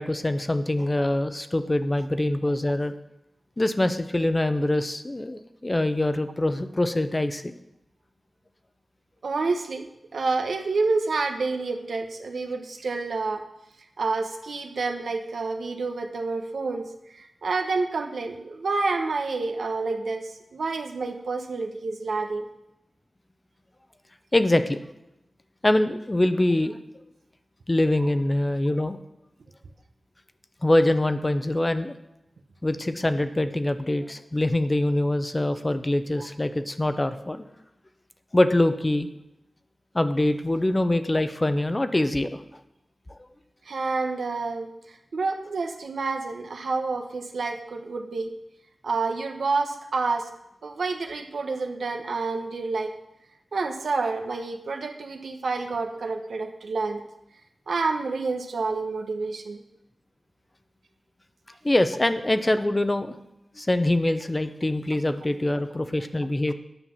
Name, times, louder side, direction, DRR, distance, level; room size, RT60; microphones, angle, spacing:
voice 1, 0.0-2.9 3.6-7.5 24.3-24.8 25.6-26.8 27.7-29.0 30.6-31.9 32.6-37.4 38.3-39.1 39.9-42.4 61.6-63.2 63.6-66.5, left 1 dB, 20° left, 10 dB, 0.6 m, -24 dB
voice 2, 9.2-13.4 14.0-22.5 36.2-36.3 43.6-48.3 48.8-50.3 50.6-52.9 53.5-57.0 57.7-59.6, right 3 dB, 80° right, 5 dB, 1.1 m, -28 dB
9.9 x 5.8 x 7.2 m, 0.88 s
wide cardioid pair, 105°, 0 cm